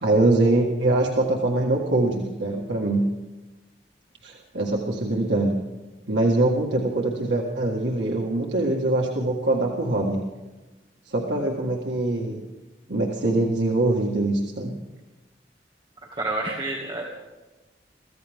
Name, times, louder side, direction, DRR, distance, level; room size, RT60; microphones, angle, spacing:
voice 1, 0.0-3.0 4.2-5.6 6.1-10.2 11.1-12.4 12.9-14.7, right 2 dB, 90° right, -1 dB, 1.7 m, -23 dB
voice 2, 16.1-17.0, right 2 dB, 30° right, -4 dB, 2.1 m, -28 dB
23.5 x 15.0 x 3.6 m, 1.1 s
head